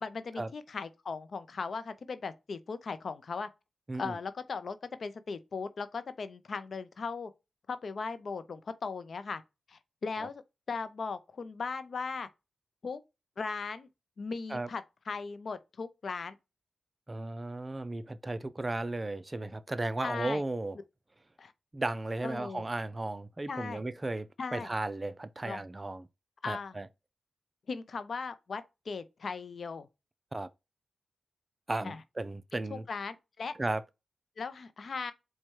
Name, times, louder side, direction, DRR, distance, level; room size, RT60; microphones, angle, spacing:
voice 1, 0.0-3.5 4.0-7.3 7.7-9.4 9.7-10.4 10.7-12.3 12.8-13.0 13.4-13.9 14.2-16.4 20.0-20.4 21.4-21.5 22.2-22.6 23.5-23.8 24.4-24.7 25.4-25.6 26.4-26.8 27.7-29.9 31.8-32.0 32.7-33.5 34.4-35.1, left 4 dB, 65° left, 0.5 m, -38 dB
voice 2, 17.1-20.8 21.7-26.1 26.5-26.9 30.3-30.5 31.7-32.8 33.6-33.8, right 2 dB, 30° right, 0.4 m, -35 dB
4.4 x 2.2 x 4.5 m
cardioid pair, 50°, 0 cm